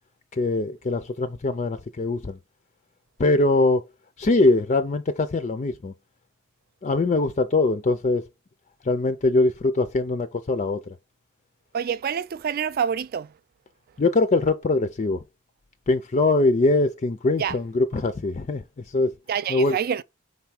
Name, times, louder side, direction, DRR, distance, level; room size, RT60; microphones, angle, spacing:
voice 1, 0.3-2.4 3.2-3.8 4.2-5.9 6.8-8.2 8.8-11.0 14.0-15.2 15.9-19.1 19.5-19.8, left 2 dB, 35° left, 0.4 m, -22 dB
voice 2, 11.7-13.3 17.4-17.5 19.3-20.0, right 7 dB, 45° right, 0.3 m, -27 dB
5.4 x 3.5 x 5.7 m
head